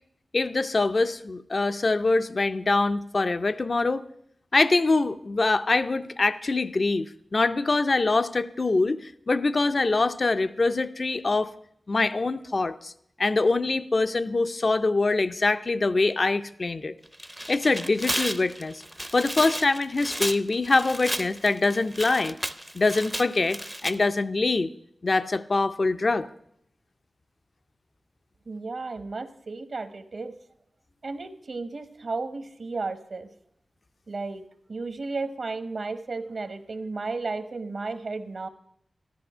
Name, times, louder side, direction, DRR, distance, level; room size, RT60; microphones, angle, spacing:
voice 1, 0.3-4.0 4.5-11.5 11.9-12.9 13.2-16.9 17.5-18.8 19.1-22.4 22.7-24.7 25.0-26.3, left 3 dB, 45° left, 12 dB, 0.5 m, -24 dB
Tearing, 17.1-23.9, equal, 5° right, 0.6 m, -33 dB
voice 2, 28.5-30.3 31.0-33.3 34.1-34.4 34.7-38.5, right 3 dB, 60° right, 10 dB, 1.0 m, -33 dB
14.0 x 12.0 x 5.5 m, 0.70 s
wide cardioid pair, 115°, 0 cm